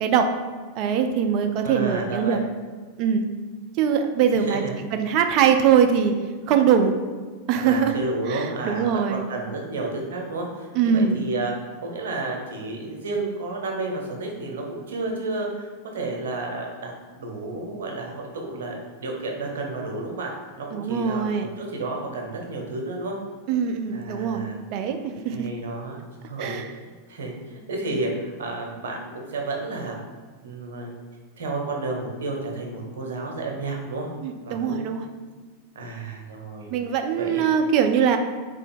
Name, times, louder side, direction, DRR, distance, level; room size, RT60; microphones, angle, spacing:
voice 1, 0.8-2.4 3.0-3.3 3.8-4.6 4.9-6.1 6.5-7.0 7.5-8.0 8.3-9.3 10.8-11.2 20.7-21.5 23.5-24.4 24.7-25.5 26.4-26.7 34.2-35.1 36.7-38.2, right 7 dB, 45° right, 5 dB, 0.4 m, -22 dB
voice 2, 1.6-2.4 4.3-4.8 7.5-11.5 11.8-20.3 20.6-23.2 23.9-24.6 25.3-26.0 26.2-26.6 27.1-30.0 30.4-31.0 31.4-34.1 34.4-34.9 35.7-36.7 37.2-37.4, right 2 dB, 65° right, 1 dB, 0.8 m, -31 dB
3.8 x 2.7 x 4.3 m, 1.5 s
figure-of-eight pair, 90°, 0 cm